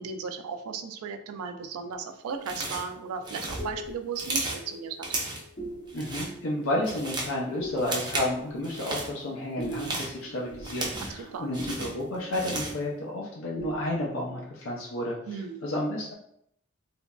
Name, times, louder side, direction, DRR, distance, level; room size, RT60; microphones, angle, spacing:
voice 1, 0.0-5.1 11.1-11.5 15.3-15.6, right 5 dB, 85° right, 7 dB, 0.3 m, -36 dB
sound 1, 2.4-2.9 3.2-4.7 5.0-5.5 5.9-6.3 6.7-7.4 7.8-8.3 8.6-9.1 9.6-11.2 11.5-12.8, right 2 dB, 20° right, 0.4 m, -34 dB
sound 2, 3.5-13.3 13.6-14.4, right 1 dB, 40° left, 0.8 m, -43 dB
voice 2, 5.9-15.2 15.6-16.1, left 1 dB, 70° left, -2 dB, 0.5 m, -31 dB
2.9 x 2.5 x 2.2 m, 0.73 s
head